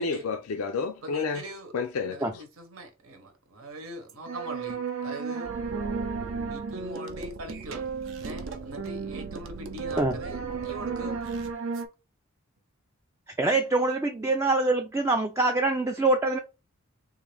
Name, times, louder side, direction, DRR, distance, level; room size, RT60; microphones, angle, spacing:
voice 1, 0.0-1.4 1.7-2.4, left 4 dB, 85° left, 0.4 m, -30 dB
voice 2, 1.0-1.7 2.1-5.5 6.5-7.8 8.2-11.2, right 1 dB, 80° right, 1.0 m, -42 dB
sound 1, 4.1-11.9, right 5 dB, 60° right, 0.6 m, -34 dB
voice 3, 13.4-16.4, right 2 dB, 15° right, 0.3 m, -24 dB
3.6 x 2.6 x 3.3 m
head